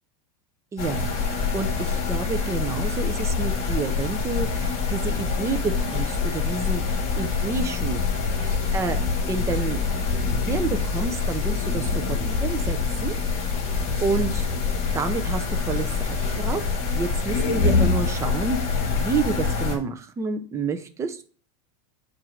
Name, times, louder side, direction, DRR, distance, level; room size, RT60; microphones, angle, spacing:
voice 1, 0.7-6.8 7.2-8.0 8.4-9.0 9.3-9.8 10.5-13.2 14.0-14.5 14.9-16.6 16.9-18.6 19.0-21.2, right 4 dB, 15° right, 7 dB, 0.5 m, -29 dB
sound 1, 0.8-19.8, left 4 dB, 35° left, 1.8 m, -25 dB
7.4 x 2.6 x 4.9 m, 0.43 s
supercardioid pair, 150°, 19 cm